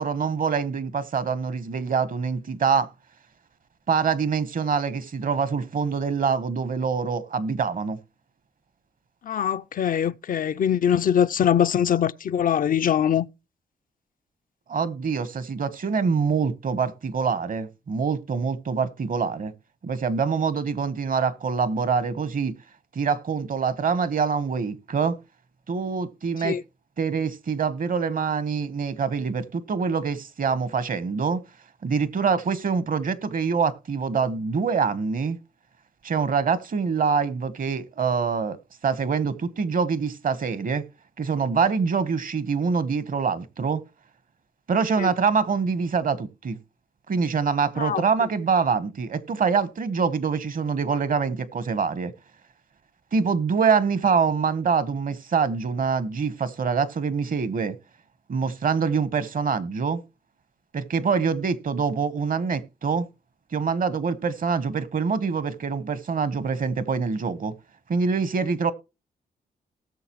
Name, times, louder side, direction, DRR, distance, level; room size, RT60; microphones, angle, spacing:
voice 1, 0.0-2.9 3.9-8.0 14.7-19.5 19.8-22.5 22.9-25.2 25.7-26.6 27.0-31.4 31.8-35.4 36.0-38.6 38.8-40.8 41.2-43.8 44.7-46.6 47.1-52.1 53.1-57.8 58.3-60.0 60.7-63.1 63.5-67.5 67.9-68.7, right 5 dB, 55° right, 1.1 m, -25 dB
voice 2, 9.2-13.3 26.4-26.6 45.0-45.1 47.8-48.0, left 9 dB, 55° left, 0.5 m, -22 dB
18.5 x 6.7 x 3.0 m
cardioid pair, 65°, 17 cm